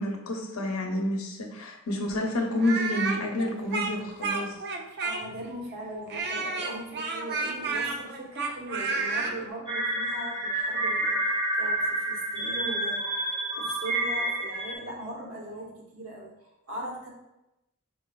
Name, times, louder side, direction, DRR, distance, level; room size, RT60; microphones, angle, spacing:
voice 1, 0.0-4.6, left 1 dB, 85° left, 2 dB, 0.7 m, -29 dB
Speech, 2.6-5.5 6.1-9.3, right 4 dB, 50° right, 0.5 m, -31 dB
voice 2, 5.0-17.1, right 1 dB, 80° right, -2 dB, 1.2 m, -39 dB
sound 1, 9.7-14.7, right 1 dB, 25° right, 1.3 m, -29 dB
4.4 x 4.1 x 2.2 m, 0.89 s
head